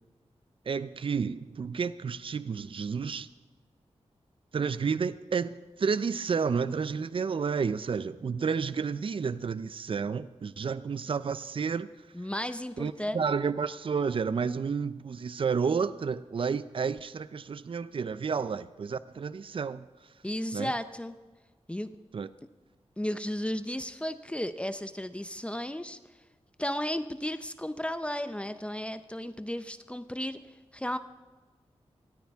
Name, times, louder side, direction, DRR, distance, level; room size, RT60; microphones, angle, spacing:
voice 1, 0.7-3.3 4.5-11.9 12.8-19.9 20.5-20.7 22.1-22.3, right 5 dB, 50° right, 15 dB, 0.5 m, -31 dB
voice 2, 12.1-13.2 20.2-21.1 21.7-22.0 23.0-26.0 26.6-30.4 30.7-31.0, left 1 dB, 10° left, 11 dB, 0.6 m, -34 dB
19.5 x 14.0 x 3.6 m, 1.3 s
wide cardioid pair, 85°, 11 cm